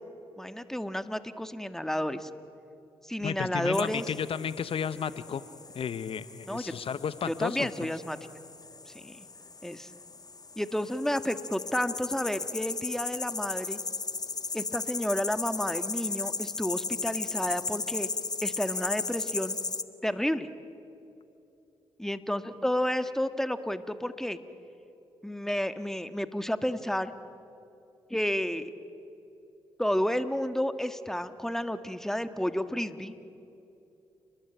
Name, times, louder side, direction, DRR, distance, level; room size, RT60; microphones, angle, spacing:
voice 1, 0.4-2.3 3.0-4.1 6.5-6.7 7.3-8.2 8.9-9.3 9.6-9.9 10.6-13.8 14.5-18.1 18.4-19.6 20.0-20.5 22.0-24.4 25.2-27.1 28.1-28.7 29.8-33.1, equal, 5° left, 10 dB, 1.8 m, -31 dB
voice 2, 3.2-5.4 5.7-7.9, left 7 dB, 65° left, 14 dB, 0.9 m, -33 dB
sound 1, 3.7-19.8, left 4 dB, 40° left, 1.5 m, -36 dB
29.5 x 21.5 x 9.2 m, 2.7 s
supercardioid pair, 45°, 10 cm